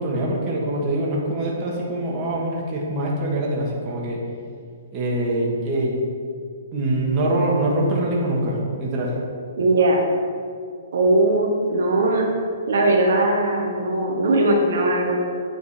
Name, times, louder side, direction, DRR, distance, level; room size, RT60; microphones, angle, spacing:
voice 1, 0.0-4.2 4.9-6.1 6.7-9.1, right 1 dB, 30° right, -3 dB, 1.5 m, -24 dB
voice 2, 9.6-10.0 10.9-12.3 12.7-15.1, right 2 dB, 70° right, 0 dB, 1.1 m, -19 dB
8.5 x 3.9 x 4.9 m, 2.2 s
hypercardioid pair, 155°, 0 cm